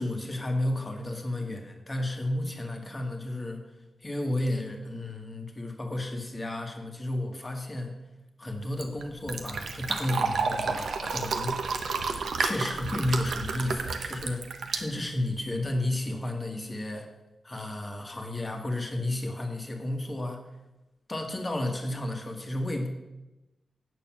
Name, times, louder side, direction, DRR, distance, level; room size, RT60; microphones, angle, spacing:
voice 1, 0.0-3.6 4.0-7.9 8.4-11.6 12.4-17.1 17.4-20.4 21.1-22.9, left 1 dB, 20° left, 3 dB, 1.5 m, -32 dB
Fill (with liquid), 8.5-15.6, right 4 dB, 90° right, 1.1 m, -31 dB
9.3 x 6.8 x 7.3 m, 1.0 s
wide cardioid pair, 165°, 0 cm